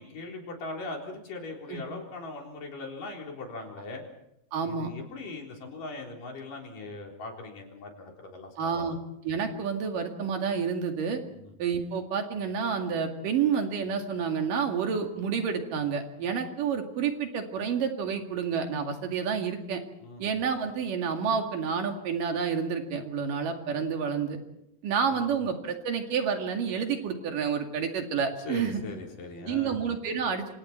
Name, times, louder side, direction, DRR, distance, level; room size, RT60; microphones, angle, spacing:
voice 1, 0.0-4.0 4.6-8.9 11.3-11.6 20.0-20.3 25.1-25.3 28.5-29.8, left 3 dB, 75° left, 0 dB, 5.6 m, -40 dB
voice 2, 4.5-4.9 8.6-9.0 9.2-11.2 11.6-19.8 20.2-24.4 24.8-28.8 29.5-30.5, right 6 dB, 75° right, 4 dB, 3.8 m, -29 dB
27.5 x 27.0 x 4.5 m, 0.81 s
omnidirectional pair, 3.9 m